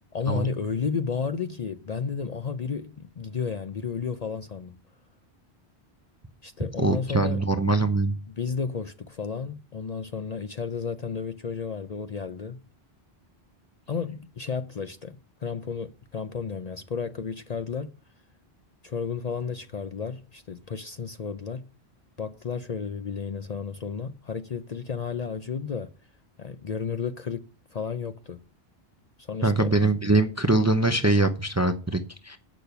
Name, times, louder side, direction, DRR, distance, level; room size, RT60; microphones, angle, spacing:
voice 1, 0.1-4.8 6.4-7.4 8.3-12.6 13.9-17.9 18.8-21.6 22.2-25.9 26.4-28.4 29.2-29.7, left 5 dB, 45° left, 0.6 m, -32 dB
voice 2, 6.8-8.1 29.4-32.4, right 2 dB, 20° right, 0.6 m, -23 dB
8.5 x 6.1 x 6.8 m
omnidirectional pair, 1.1 m